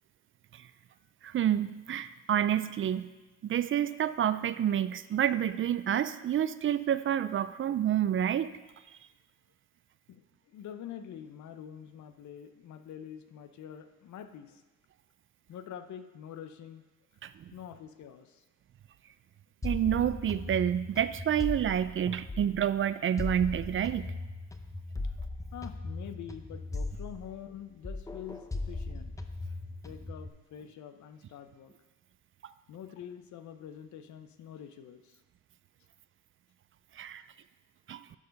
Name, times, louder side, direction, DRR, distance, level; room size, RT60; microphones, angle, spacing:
voice 1, 1.2-3.1 3.4-8.5 17.2-17.3 19.6-24.1 37.0-37.2 37.9-38.0, right 10 dB, 45° right, 14 dB, 0.4 m, -28 dB
voice 2, 10.1-14.6 15.5-16.8 17.5-18.4 25.5-29.1 29.8-31.7 32.7-35.2, left 9 dB, 70° left, 9 dB, 0.7 m, -46 dB
sound 1, 19.6-22.7 23.2-27.6 27.8-30.3, left 2 dB, 10° left, 0.7 m, -38 dB
12.0 x 4.7 x 5.2 m, 1.2 s
cardioid pair, 90°, 30 cm